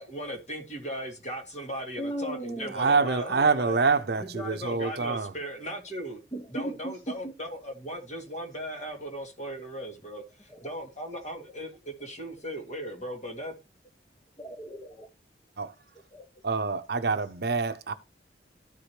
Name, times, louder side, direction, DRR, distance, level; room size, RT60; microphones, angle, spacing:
voice 1, 0.0-3.8 4.2-6.2 6.5-13.5, equal, 40° left, 2.1 m, -37 dB
voice 2, 2.0-2.7 6.3-7.3 10.5-10.7 14.4-15.1 16.1-16.4, right 1 dB, 20° left, 0.9 m, -37 dB
voice 3, 2.7-5.3 15.6-15.7 16.4-17.9, right 4 dB, 60° right, 0.7 m, -26 dB
13.5 x 4.9 x 2.9 m
head